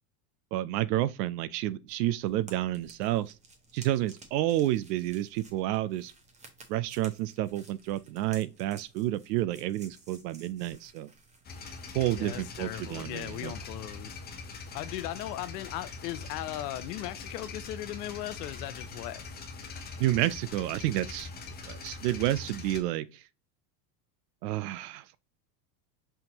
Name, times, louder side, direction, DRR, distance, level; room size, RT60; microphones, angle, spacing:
voice 1, 0.5-3.3 3.7-6.1 6.7-11.1 11.9-13.6 20.0-21.3 21.6-23.2 24.4-25.2, right 14 dB, 85° right, 0.6 m, -30 dB
sound 1, 1.9-12.9, right 2 dB, 15° right, 0.7 m, -55 dB
sound 2, 11.5-22.8, left 4 dB, 20° left, 0.6 m, -43 dB
voice 2, 12.1-14.2 14.7-19.3, left 14 dB, 90° left, 0.7 m, -38 dB
5.7 x 2.6 x 2.9 m
supercardioid pair, 130°, 47 cm